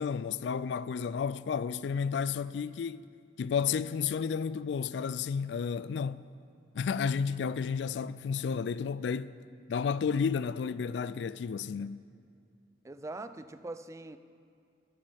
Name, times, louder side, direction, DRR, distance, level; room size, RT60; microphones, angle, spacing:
voice 1, 0.0-3.0 3.4-6.2 6.7-9.3 9.7-12.0, left 6 dB, 70° left, 0.3 m, -32 dB
voice 2, 12.8-14.2, right 2 dB, 15° right, 0.4 m, -42 dB
14.5 x 13.5 x 3.5 m
head